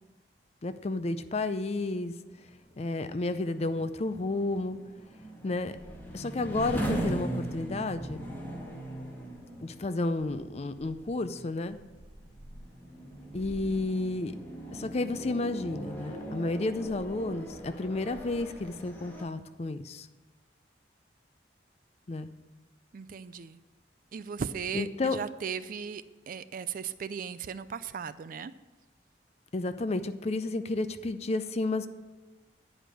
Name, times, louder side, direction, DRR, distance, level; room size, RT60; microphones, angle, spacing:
voice 1, 0.6-2.1 2.8-4.8 5.4-5.7 6.1-8.2 9.6-11.8 13.3-14.4 14.7-20.1 22.1-22.3 24.7-25.2 29.5-31.9, left 2 dB, 35° left, 11 dB, 0.5 m, -31 dB
sound 1, 2.2-19.2, right 1 dB, 10° left, 1.9 m, -40 dB
voice 2, 22.9-23.6 24.1-28.5, right 6 dB, 50° right, 14 dB, 0.4 m, -37 dB
10.0 x 5.1 x 7.7 m, 1.2 s
head